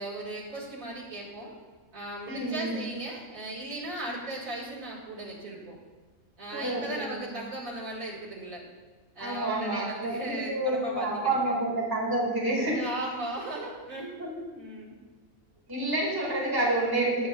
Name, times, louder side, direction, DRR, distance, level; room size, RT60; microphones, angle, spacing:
voice 1, 0.0-1.6 1.9-5.8 6.4-8.6 9.1-11.1 11.4-11.6 12.5-14.1 14.5-15.0, right 1 dB, 75° right, -4 dB, 2.7 m, -37 dB
voice 2, 2.3-2.8 6.5-7.3 9.2-12.8 14.2-14.3 15.7-17.3, right 1 dB, 15° right, -4 dB, 2.3 m, -29 dB
17.5 x 7.0 x 2.5 m, 1.4 s
omnidirectional pair, 1.4 m